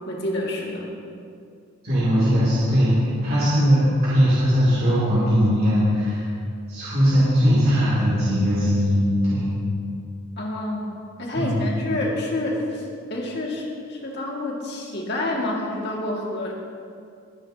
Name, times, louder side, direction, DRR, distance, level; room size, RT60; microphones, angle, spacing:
voice 1, 0.1-0.9 10.4-10.9 11.2-12.8 13.1-16.5, left 1 dB, 50° left, -2 dB, 2.1 m, -28 dB
voice 2, 1.8-6.3 6.7-9.5 11.3-11.7, equal, 45° right, -10 dB, 2.8 m, -20 dB
21.0 x 9.9 x 2.9 m, 2.4 s
head